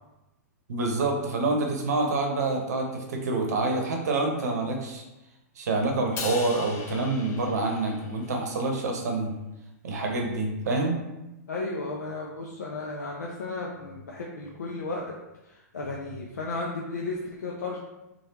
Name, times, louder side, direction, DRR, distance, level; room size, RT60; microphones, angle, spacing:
voice 1, 0.7-5.0 5.6-9.3 9.8-11.0, right 2 dB, 70° right, 2 dB, 0.7 m, -27 dB
Crash cymbal, 6.2-8.5, left 4 dB, 30° left, 0.5 m, -39 dB
voice 2, 11.5-15.1 15.5-17.8, left 3 dB, 80° left, -2 dB, 0.4 m, -34 dB
3.3 x 2.3 x 2.8 m, 0.97 s
hypercardioid pair, 110°, 9 cm